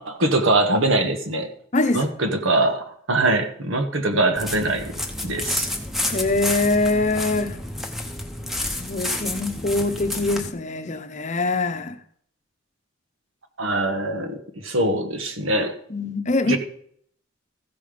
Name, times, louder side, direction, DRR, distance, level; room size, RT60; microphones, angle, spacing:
voice 1, 0.0-1.5 1.9-4.9 5.2-5.7 13.6-15.7 16.5-16.6, right 2 dB, 85° right, 1.4 m, -22 dB
voice 2, 1.7-2.0 6.1-7.6 8.6-12.0 15.9-16.6, left 2 dB, 35° left, 0.8 m, -23 dB
sound 1, 4.3-10.5, left 1 dB, ahead, 0.9 m, -30 dB
14.5 x 5.5 x 5.1 m
head